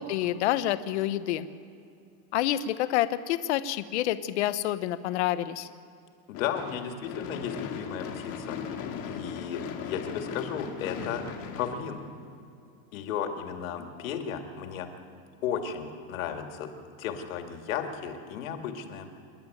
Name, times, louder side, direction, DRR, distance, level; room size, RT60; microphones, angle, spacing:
voice 1, 0.0-1.5 2.3-5.7, left 13 dB, 50° left, 13 dB, 0.9 m, -28 dB
voice 2, 6.3-11.2 11.6-12.0 12.9-14.9 15.4-16.7 17.0-19.1, left 8 dB, 65° left, 5 dB, 2.3 m, -34 dB
Gunshot gunfire / Fireworks, 6.3-12.6, left 7 dB, 35° left, 1.9 m, -38 dB
27.5 x 11.0 x 9.1 m, 2.5 s
supercardioid pair, 180°, 43 cm